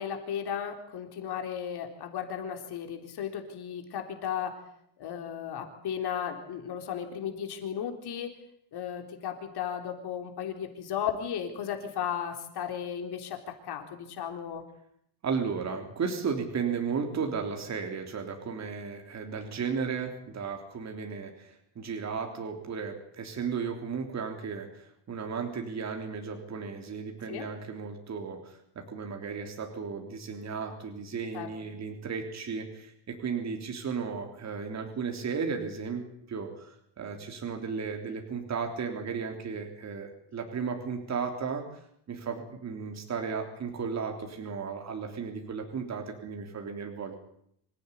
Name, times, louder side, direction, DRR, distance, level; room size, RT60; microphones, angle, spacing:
voice 1, 0.0-4.6 5.0-8.3 8.7-14.6 27.3-27.5 31.3-31.5, left 8 dB, 60° left, 4 dB, 3.8 m, -35 dB
voice 2, 15.2-41.7 42.1-47.1, right 5 dB, 35° right, 3 dB, 3.6 m, -35 dB
26.5 x 16.0 x 9.9 m, 0.72 s
cardioid pair, 160°, 44 cm